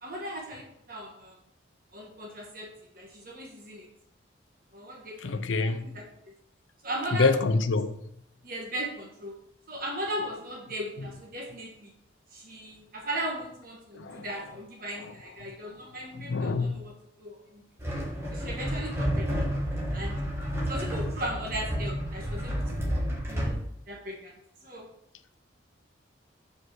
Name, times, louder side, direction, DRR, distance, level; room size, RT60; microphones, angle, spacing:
voice 1, 0.0-1.3 1.9-2.7 2.9-3.9 4.7-6.1 6.8-7.3 8.4-9.3 9.7-11.9 12.3-16.9 17.2-17.6 18.3-19.4 19.9-20.2 20.7-22.6 23.3-24.8, right 1 dB, 50° right, 1.4 m, -37 dB
voice 2, 5.2-5.9 7.2-8.0 14.0-14.2 16.3-16.8, left 3 dB, 90° left, 0.6 m, -26 dB
sound 1, 17.8-23.6, equal, 15° right, 1.4 m, -30 dB
5.2 x 4.6 x 6.2 m
head